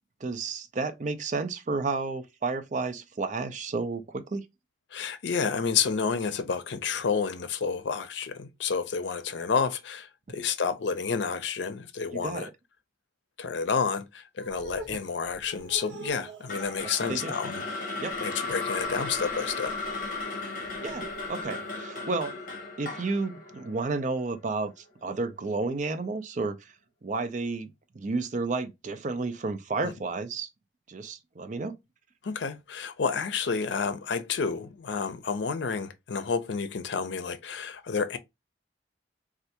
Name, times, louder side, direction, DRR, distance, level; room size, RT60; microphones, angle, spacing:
voice 1, 0.2-4.4 12.1-12.5 17.1-17.3 18.0-18.2 20.8-22.3 22.8-24.7 25.0-26.7 27.0-27.7 27.9-30.5 30.9-31.8, right 3 dB, 45° right, 0.5 m, -31 dB
voice 2, 4.9-12.5 13.4-17.7 18.2-19.8 29.8-29.9 32.2-38.2, left 5 dB, 85° left, 0.5 m, -30 dB
sound 1, 14.4-21.8, right 2 dB, 85° right, 0.9 m, -46 dB
sound 2, 16.5-24.7, left 3 dB, 50° left, 1.0 m, -35 dB
3.3 x 2.4 x 2.7 m
head